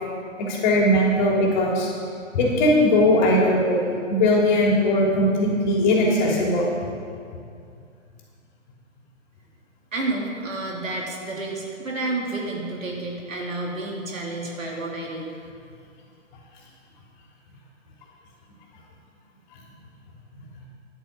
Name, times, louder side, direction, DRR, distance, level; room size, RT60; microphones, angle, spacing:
voice 1, 0.5-1.9 2.3-6.7, left 1 dB, 35° left, -2 dB, 3.2 m, -19 dB
voice 2, 9.9-15.3, right 2 dB, 90° right, -1 dB, 3.3 m, -30 dB
11.0 x 9.2 x 7.5 m, 2.3 s
hypercardioid pair, 145°, 38 cm